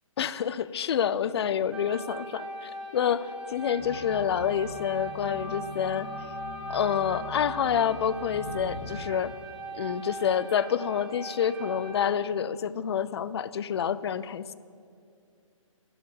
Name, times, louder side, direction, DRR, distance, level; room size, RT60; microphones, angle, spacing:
voice 1, 0.2-6.1 6.7-9.3 9.7-14.5, left 8 dB, 50° left, 16 dB, 0.5 m, -28 dB
sound 1, 1.7-11.9, right 1 dB, 5° right, 0.9 m, -40 dB
sound 2, 3.8-9.0, left 2 dB, 20° left, 1.9 m, -41 dB
9.1 x 7.8 x 9.2 m, 2.4 s
hypercardioid pair, 145°, 17 cm